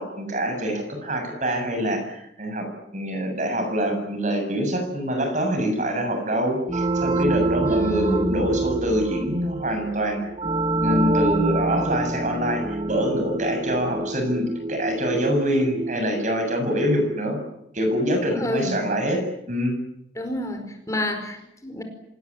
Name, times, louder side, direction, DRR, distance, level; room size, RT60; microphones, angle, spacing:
voice 1, 0.0-2.7 2.9-10.2 10.8-17.4 17.7-19.2 19.5-19.7, equal, 40° right, 5 dB, 7.4 m, -25 dB
sound 1, 6.7-17.1, right 2 dB, 25° right, 0.9 m, -27 dB
voice 2, 7.6-8.4 18.3-18.8 20.1-21.8, left 1 dB, 15° left, 6 dB, 4.9 m, -29 dB
26.5 x 19.0 x 9.8 m, 0.79 s
head